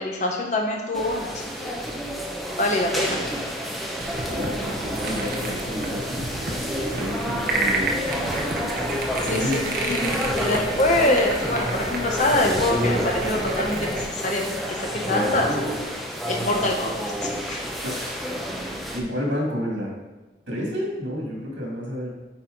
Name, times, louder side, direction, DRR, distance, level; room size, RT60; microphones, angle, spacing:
voice 1, 0.0-1.7 2.6-3.2 9.3-10.0 10.4-15.9 16.3-17.6, left 1 dB, 40° left, 1 dB, 1.0 m, -25 dB
sound 1, 0.9-19.0, equal, ahead, 0.6 m, -29 dB
sound 2, 4.0-14.1, right 2 dB, 50° right, 0.8 m, -30 dB
voice 2, 4.3-6.6 6.9-7.9 9.2-9.6 10.0-10.2 17.8-18.5 18.9-19.9 20.5-22.1, equal, 80° right, -2 dB, 2.1 m, -30 dB
8.5 x 4.2 x 3.9 m, 1.1 s
head